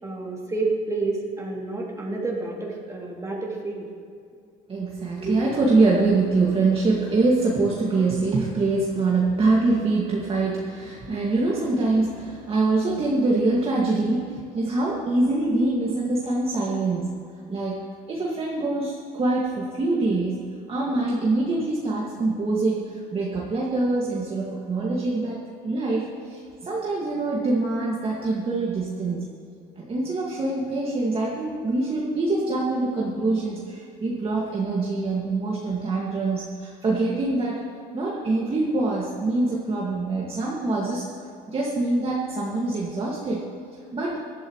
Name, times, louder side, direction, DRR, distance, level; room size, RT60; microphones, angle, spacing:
voice 1, 0.0-3.9, right 3 dB, 20° right, -3 dB, 2.9 m, -29 dB
voice 2, 4.7-17.1 17.5-17.8 18.1-29.2 29.8-37.6 37.9-41.0 41.5-43.4 43.9-44.2, right 3 dB, 35° right, -5 dB, 2.1 m, -24 dB
19.0 x 12.5 x 3.2 m, 2.4 s
cardioid pair, 110°, 17 cm